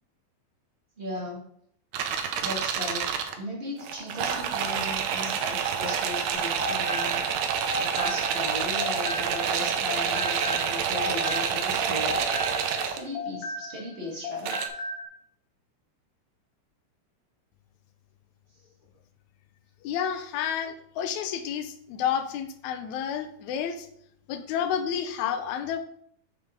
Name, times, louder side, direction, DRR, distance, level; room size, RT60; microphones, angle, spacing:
voice 1, 1.0-1.5 2.4-12.3 12.8-14.8, left 1 dB, 50° right, -4 dB, 0.6 m, -37 dB
sound 1, 1.9-3.3 3.8-13.0 14.4-14.7, right 7 dB, 75° right, 1.9 m, -28 dB
sound 2, 6.3-9.6 9.9-14.0 14.2-15.1, left 2 dB, 60° left, 1.6 m, -35 dB
voice 2, 19.8-23.9 24.3-25.8, left 8 dB, 80° left, 8 dB, 1.8 m, -30 dB
7.2 x 5.0 x 3.6 m, 0.66 s
omnidirectional pair, 3.7 m